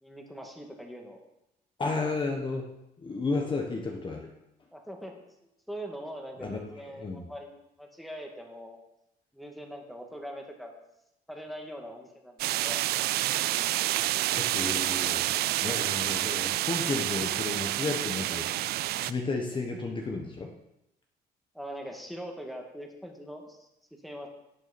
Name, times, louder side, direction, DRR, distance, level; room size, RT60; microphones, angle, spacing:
voice 1, 0.0-1.2 4.7-5.2 5.7-8.8 9.3-10.8 11.3-12.8 21.5-24.3, equal, ahead, 2 dB, 2.1 m, -42 dB
voice 2, 1.8-4.3 6.4-7.3 14.3-15.3 15.6-20.5, left 3 dB, 30° left, 2 dB, 1.3 m, -33 dB
sound 1, 12.4-19.1, right 15 dB, 70° right, 0.4 m, -28 dB
17.5 x 6.4 x 4.4 m, 0.85 s
cardioid pair, 110°, 17 cm